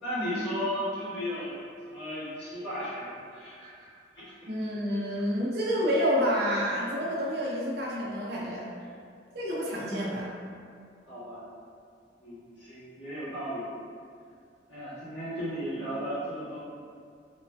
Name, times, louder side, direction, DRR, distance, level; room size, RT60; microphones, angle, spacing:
voice 1, 0.0-3.9 4.1-4.3 11.1-11.4 12.2-13.7 14.7-16.6, equal, 80° left, -13 dB, 1.4 m, -35 dB
voice 2, 4.5-8.7 9.3-10.3, equal, 60° right, -5 dB, 0.6 m, -29 dB
2.9 x 2.5 x 2.2 m, 2.2 s
head